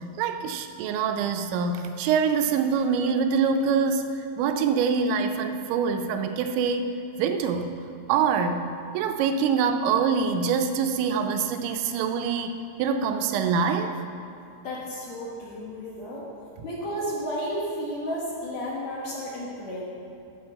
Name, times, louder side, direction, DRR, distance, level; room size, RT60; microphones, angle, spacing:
voice 1, 0.2-4.1 4.4-6.9 7.2-7.7 8.1-14.0, right 6 dB, 80° right, 6 dB, 2.9 m, -25 dB
voice 2, 14.6-16.2 16.6-19.8, equal, 80° left, -4 dB, 1.5 m, -32 dB
11.5 x 6.4 x 7.4 m, 2.6 s
omnidirectional pair, 5.4 m